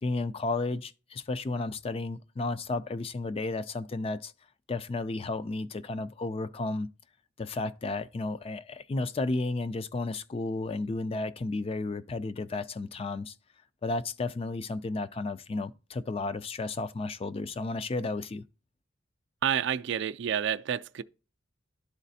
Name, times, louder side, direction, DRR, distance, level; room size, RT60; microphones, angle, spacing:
voice 1, 0.0-4.3 4.7-6.9 7.4-13.3 13.8-18.4, left 3 dB, 30° left, 0.3 m, -33 dB
voice 2, 19.4-21.0, right 9 dB, 65° right, 0.3 m, -29 dB
12.0 x 4.0 x 2.7 m
head